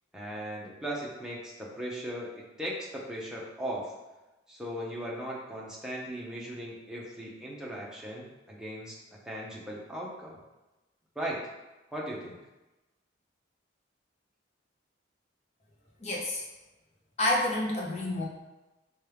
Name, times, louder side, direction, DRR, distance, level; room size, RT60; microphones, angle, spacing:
voice 1, 0.1-3.9 4.5-9.0 9.2-10.4 11.2-11.4 11.9-12.4, equal, 5° right, -4 dB, 0.6 m, -38 dB
voice 2, 16.0-16.4 17.2-18.3, left 1 dB, 35° left, -3 dB, 0.7 m, -28 dB
4.4 x 2.3 x 3.3 m, 1.1 s
head